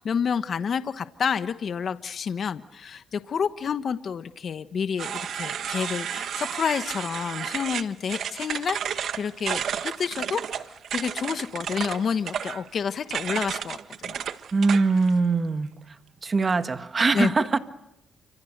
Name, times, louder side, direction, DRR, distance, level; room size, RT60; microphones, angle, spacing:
voice 1, 0.0-14.2 17.1-17.6, left 6 dB, 50° left, 1.2 m, -29 dB
sound 1, 5.0-15.1, right 8 dB, 65° right, 1.4 m, -32 dB
voice 2, 14.5-15.7 16.2-17.6, right 4 dB, 30° right, 1.7 m, -22 dB
29.5 x 27.0 x 6.7 m
cardioid pair, 90°, 0 cm